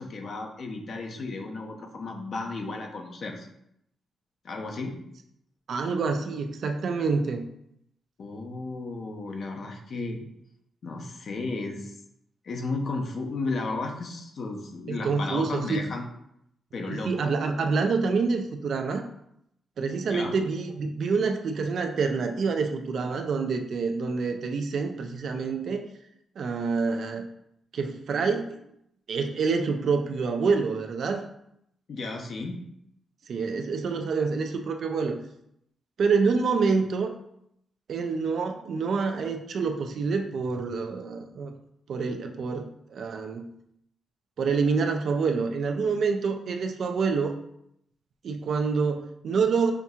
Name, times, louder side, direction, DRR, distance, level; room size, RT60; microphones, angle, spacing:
voice 1, 0.0-3.5 4.4-4.9 8.2-10.2 10.8-12.0 12.4-16.1 16.7-17.3 20.1-20.4 31.9-32.6, left 3 dB, 55° left, 2 dB, 0.6 m, -34 dB
voice 2, 5.7-7.5 14.9-15.8 16.9-19.0 19.8-25.9 26.4-27.3 27.7-28.6 29.1-31.2 33.3-35.2 36.0-37.1 37.9-41.5 41.9-43.5 44.4-47.3 48.2-49.7, right 4 dB, 65° right, 5 dB, 0.4 m, -27 dB
5.7 x 2.7 x 2.4 m, 0.75 s
cardioid pair, 120°, 0 cm